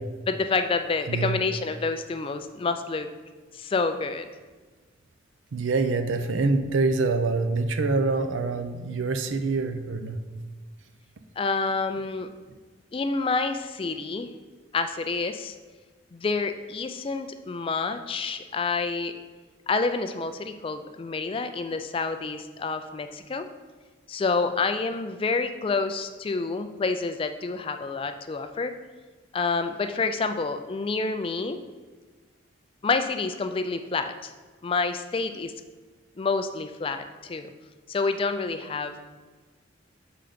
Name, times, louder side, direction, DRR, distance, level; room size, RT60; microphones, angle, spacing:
voice 1, 0.3-3.1 3.5-4.3 11.4-12.3 12.9-14.3 14.7-15.5 16.1-19.1 19.7-23.5 24.1-28.7 29.3-31.6 32.8-34.3 34.6-35.5 36.2-37.5 37.9-39.0, left 4 dB, 25° left, 8 dB, 0.3 m, -28 dB
voice 2, 1.1-1.4 5.5-10.2, right 3 dB, 80° right, 8 dB, 0.5 m, -25 dB
5.8 x 3.9 x 5.0 m, 1.4 s
head